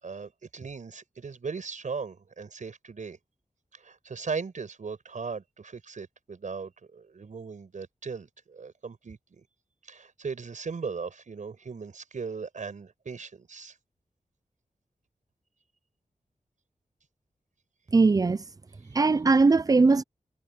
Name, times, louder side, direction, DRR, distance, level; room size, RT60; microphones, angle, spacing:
voice 1, 0.0-3.2 3.7-9.4 9.8-13.8, right 5 dB, 70° right, 5.5 m, -38 dB
voice 2, 17.9-18.4 18.9-20.0, right 3 dB, 25° right, 0.5 m, -20 dB
wide cardioid pair, 115°, 13 cm